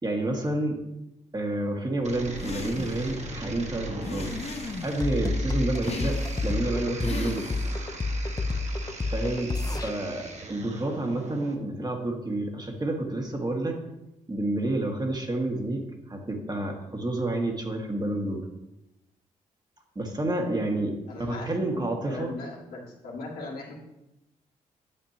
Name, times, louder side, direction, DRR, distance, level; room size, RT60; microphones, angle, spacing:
voice 1, 0.0-0.8 1.3-4.3 4.8-7.5 9.0-9.5 9.8-13.8 14.3-18.4 20.0-22.4, right 1 dB, 25° right, 1 dB, 1.9 m, -29 dB
sound 1, 2.0-11.5, right 2 dB, 45° right, 1.6 m, -40 dB
sound 2, 2.4-3.1 4.0-5.1 5.8-6.5 7.0-7.8, left 4 dB, 40° left, 1.1 m, -37 dB
sound 3, 5.0-9.9, left 2 dB, 25° left, 0.7 m, -28 dB
voice 2, 21.1-23.7, left 3 dB, 75° left, -5 dB, 2.3 m, -38 dB
9.0 x 7.2 x 2.9 m, 0.91 s
hypercardioid pair, 45°, 16 cm